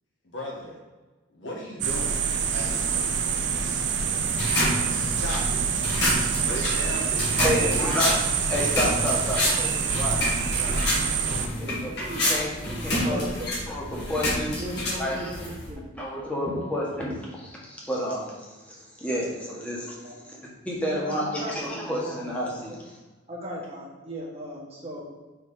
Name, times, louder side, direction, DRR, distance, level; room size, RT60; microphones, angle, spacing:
voice 1, 0.2-0.8 1.3-2.2 2.5-3.1 4.9-5.9 6.4-8.4, left 1 dB, 80° left, -1 dB, 1.5 m, -37 dB
sound 1, 1.8-11.5, right 6 dB, 65° right, 0.6 m, -26 dB
sound 2, 4.2-15.7, left 1 dB, 60° left, 1.8 m, -29 dB
voice 2, 7.4-8.2 8.5-10.2 10.5-10.8 11.6-11.9 12.3-12.5 12.8-13.2 13.7-14.6 15.0-15.3 15.9-20.0 20.6-22.7, equal, 5° left, -5 dB, 1.4 m, -30 dB
voice 3, 12.7-13.5 14.6-15.9 19.5-19.6 20.0-20.2 20.9-21.9 22.7-22.8 23.3-25.0, right 1 dB, 30° right, -4 dB, 1.3 m, -38 dB
4.6 x 4.6 x 4.8 m, 1.3 s
head